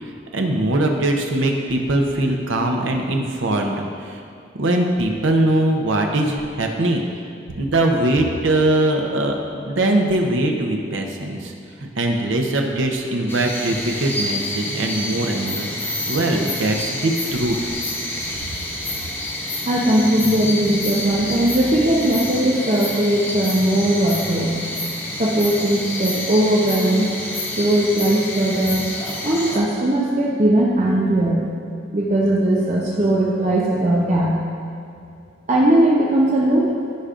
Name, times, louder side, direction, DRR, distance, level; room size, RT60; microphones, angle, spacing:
voice 1, 0.3-4.2 4.6-7.0 7.6-11.5 11.8-15.7 16.1-17.6, right 1 dB, 80° right, 2 dB, 0.8 m, -21 dB
sound 1, 13.3-29.6, left 1 dB, 10° left, 0.7 m, -28 dB
voice 2, 19.7-24.6 25.2-27.1 27.6-28.9 29.2-31.4 31.9-34.4 35.5-36.7, right 1 dB, 35° right, -3 dB, 0.7 m, -19 dB
14.5 x 5.2 x 2.5 m, 2.6 s
head